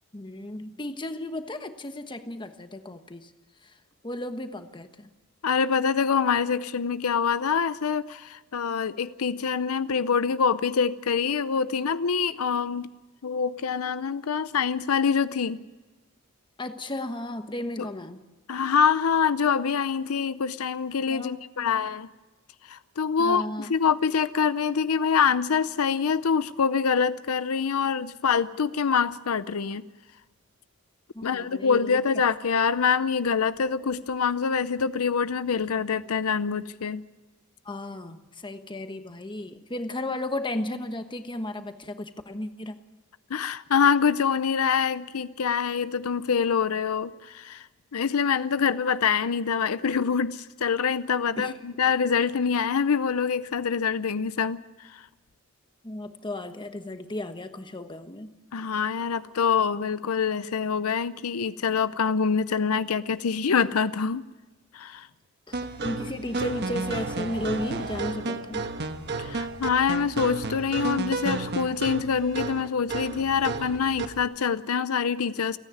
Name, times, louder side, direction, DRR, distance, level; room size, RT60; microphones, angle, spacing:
voice 1, 0.1-3.3 3.6-3.7 4.0-5.1 16.6-18.2 21.1-21.9 23.2-23.7 31.1-32.0 37.6-42.8 51.4-51.5 55.8-58.3 65.5-68.6, left 1 dB, 20° left, 8 dB, 1.2 m, -34 dB
voice 2, 5.4-12.9 13.2-15.6 17.8-17.9 18.5-22.1 22.6-29.8 31.2-37.0 43.3-47.7 47.9-55.1 58.5-64.2 64.7-65.1 69.2-75.6, left 6 dB, 85° left, 14 dB, 0.6 m, -25 dB
sound 1, 65.5-74.2, right 3 dB, 50° right, 1.3 m, -32 dB
29.0 x 9.9 x 9.5 m, 1.2 s
head